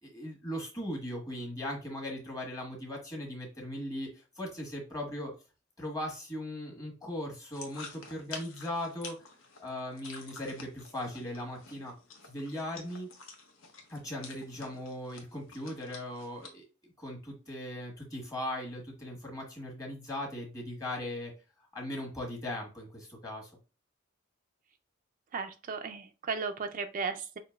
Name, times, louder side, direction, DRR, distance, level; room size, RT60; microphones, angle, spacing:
voice 1, 0.0-4.1 4.4-5.3 5.8-9.2 9.6-11.9 12.2-13.1 13.9-16.6 17.0-21.3 21.7-23.5, left 1 dB, 20° left, -1 dB, 1.3 m, -38 dB
sound 1, 7.5-16.5, left 4 dB, 90° left, 0.9 m, -49 dB
voice 2, 25.3-27.4, right 5 dB, 45° right, 6 dB, 0.4 m, -35 dB
5.8 x 2.7 x 2.4 m, 0.31 s
head